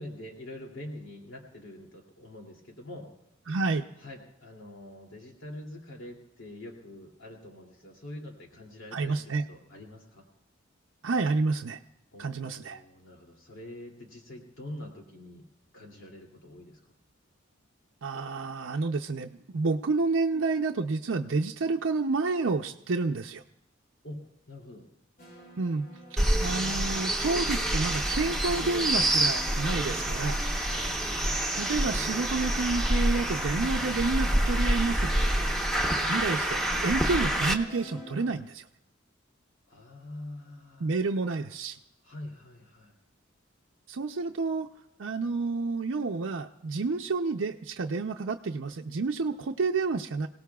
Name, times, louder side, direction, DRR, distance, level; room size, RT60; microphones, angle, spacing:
voice 1, 0.0-3.1 4.0-10.2 12.1-15.5 15.7-16.8 24.0-24.8 30.6-30.9 39.7-41.1 42.0-42.9, left 1 dB, 85° left, -1 dB, 2.6 m, -45 dB
voice 2, 3.5-3.8 8.9-9.4 11.0-11.8 12.2-12.8 18.0-23.4 25.6-30.4 31.5-35.1 35.9-38.7 40.8-41.8 43.9-44.7 45.0-50.3, right 3 dB, 80° right, 3 dB, 0.6 m, -29 dB
sound 1, 25.2-38.3, right 2 dB, 45° left, 2.4 m, -47 dB
sound 2, 26.2-37.5, right 1 dB, ahead, 0.9 m, -27 dB
28.0 x 17.5 x 2.3 m, 0.82 s
head